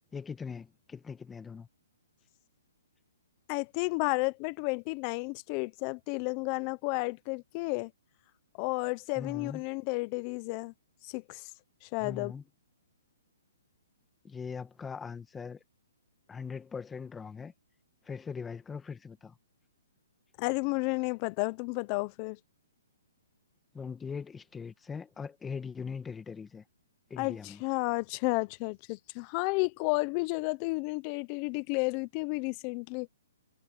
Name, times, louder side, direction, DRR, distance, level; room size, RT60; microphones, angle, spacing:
voice 1, 0.1-1.7 9.1-9.6 12.0-12.4 14.2-15.6 16.3-17.5 18.0-19.4 23.7-26.6 27.1-27.6, left 6 dB, 10° left, 1.7 m, -41 dB
voice 2, 3.5-7.9 8.6-10.7 11.0-11.5 11.8-12.3 20.4-22.4 27.2-33.1, left 28 dB, 30° left, 0.9 m, -32 dB
hypercardioid pair, 150°, 0 cm